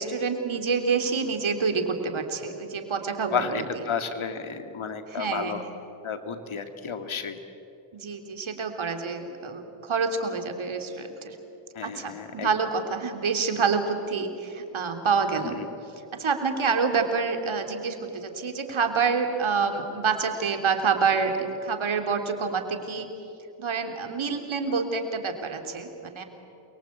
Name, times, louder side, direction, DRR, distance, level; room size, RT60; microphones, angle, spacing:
voice 1, 0.0-3.6 5.1-5.6 7.9-11.4 11.8-15.6 16.1-23.1 23.6-26.2, right 5 dB, 70° right, 5 dB, 3.3 m, -27 dB
voice 2, 3.3-5.6 6.0-7.4 11.7-12.5 15.4-15.7, left 6 dB, 75° left, 8 dB, 2.3 m, -32 dB
28.5 x 23.5 x 8.6 m, 2.9 s
cardioid pair, 45°, 49 cm